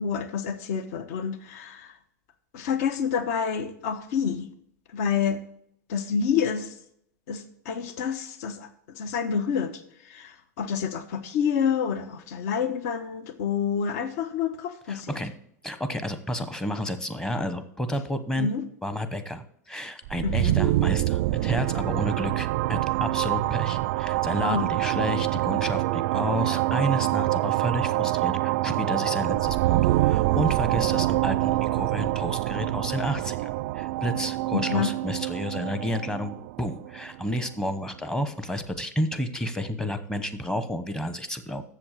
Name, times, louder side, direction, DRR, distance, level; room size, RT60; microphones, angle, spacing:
voice 1, 0.0-1.9 2.5-4.5 4.9-5.4 5.9-6.7 7.3-8.7 8.9-9.7 10.0-15.2 18.4-18.6 20.2-20.5 24.4-24.7 34.5-34.9, left 7 dB, 60° left, 11 dB, 1.2 m, -28 dB
voice 2, 14.9-15.3 15.6-18.5 18.8-41.6, equal, 5° left, 11 dB, 0.9 m, -31 dB
sound 1, 20.1-37.7, right 17 dB, 60° right, 0.4 m, -26 dB
7.7 x 7.2 x 7.3 m, 0.70 s
hypercardioid pair, 125°, 9 cm